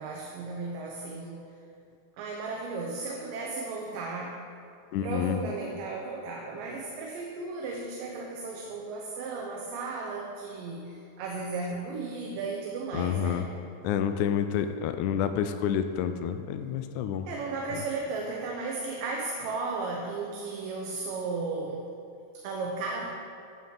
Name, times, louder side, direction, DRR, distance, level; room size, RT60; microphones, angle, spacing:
voice 1, 0.0-1.4 2.2-4.4 5.0-13.5 17.2-21.9 22.3-23.1, right 3 dB, 85° right, -1 dB, 2.6 m, -35 dB
voice 2, 4.9-5.4 12.9-13.5 13.8-17.3 17.7-17.8, left 9 dB, 80° left, 8 dB, 1.8 m, -29 dB
13.0 x 4.3 x 7.3 m, 2.6 s
omnidirectional pair, 3.8 m